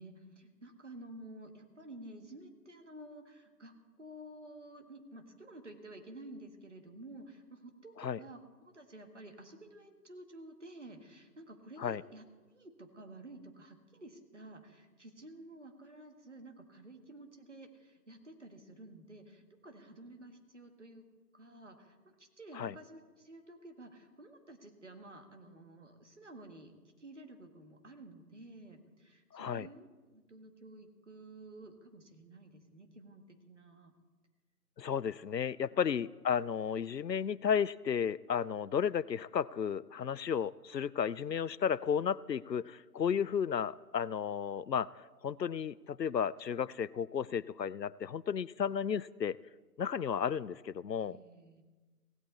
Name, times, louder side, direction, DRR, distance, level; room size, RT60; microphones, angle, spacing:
voice 1, 0.0-26.7 27.0-33.9 35.7-35.8 51.0-51.6, right 1 dB, 45° right, 5 dB, 1.9 m, -52 dB
voice 2, 29.3-29.7 34.8-49.4 49.8-51.2, left 7 dB, 90° left, 21 dB, 0.6 m, -33 dB
16.5 x 16.5 x 4.2 m, 1.3 s
figure-of-eight pair, 160°, 48 cm